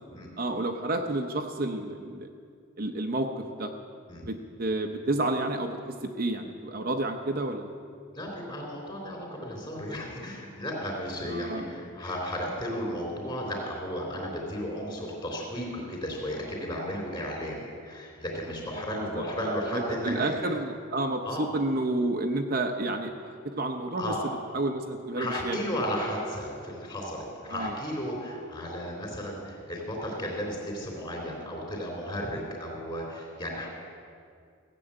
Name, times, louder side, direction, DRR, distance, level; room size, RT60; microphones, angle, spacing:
voice 1, 0.4-2.3 2.8-3.7 4.3-7.7 11.3-11.7 19.0-24.0 24.5-25.6 27.5-27.8, right 2 dB, 40° right, 4 dB, 0.7 m, -30 dB
voice 2, 8.1-20.4 21.2-21.5 24.0-24.4 25.2-33.7, equal, 20° left, -1 dB, 3.5 m, -34 dB
16.0 x 7.7 x 8.8 m, 2.3 s
head